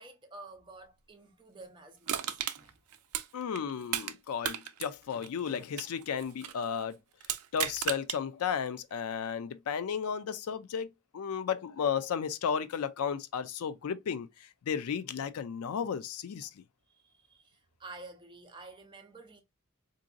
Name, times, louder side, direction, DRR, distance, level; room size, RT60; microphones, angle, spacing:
voice 1, 0.0-2.7 16.9-19.4, right 3 dB, 20° right, 0.6 m, -50 dB
Crushing, 2.1-4.2 4.4-6.6 7.2-8.2 8.7-8.8, right 10 dB, 80° right, 0.4 m, -35 dB
voice 2, 3.3-7.0 7.5-10.9 11.1-16.6, left 7 dB, 75° left, 0.4 m, -34 dB
3.7 x 2.6 x 2.4 m
head